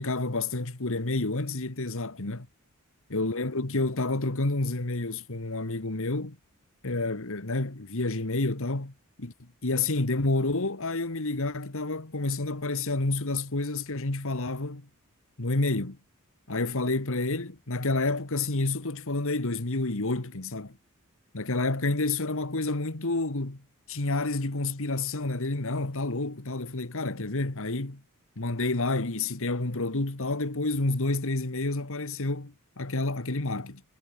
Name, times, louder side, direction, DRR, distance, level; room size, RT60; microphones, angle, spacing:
voice 1, 0.0-2.5 3.1-6.4 6.8-8.9 9.2-14.9 15.4-16.0 16.5-20.8 21.3-23.6 23.9-28.0 28.4-33.8, left 2 dB, 65° left, 1.9 m, -29 dB
head